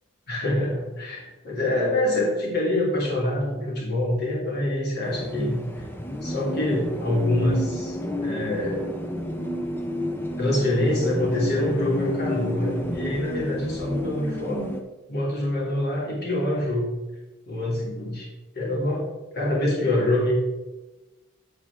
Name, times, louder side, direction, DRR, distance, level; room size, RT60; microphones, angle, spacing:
voice 1, 0.3-5.8 6.2-8.8 10.4-14.8 15.1-16.9 17.5-18.3 18.5-19.0 19.3-20.3, left 1 dB, 50° left, -4 dB, 3.0 m, -25 dB
sound 1, 5.0-14.8, left 1 dB, 10° left, 0.7 m, -31 dB
8.9 x 8.2 x 3.7 m, 1.1 s
head